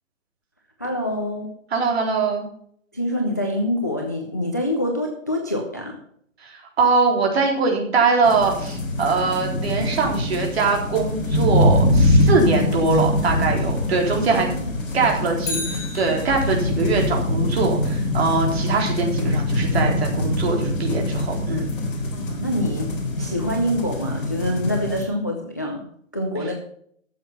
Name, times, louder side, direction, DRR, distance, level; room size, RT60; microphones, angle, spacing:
voice 1, 0.8-1.5 2.9-6.0 14.2-15.4 22.1-25.8 26.1-26.5, equal, 15° left, 1 dB, 0.5 m, -26 dB
voice 2, 1.7-2.4 6.4-14.5 14.9-21.7 26.4-26.5, right 4 dB, 50° right, 1 dB, 3.9 m, -22 dB
sound 1, 8.2-25.0, left 1 dB, 40° left, 3.6 m, -23 dB
Bicycle, 15.4-16.8 25.1-25.2, left 3 dB, 60° left, 4.8 m, -33 dB
13.5 x 7.6 x 5.7 m, 0.65 s
hypercardioid pair, 170°, 40 cm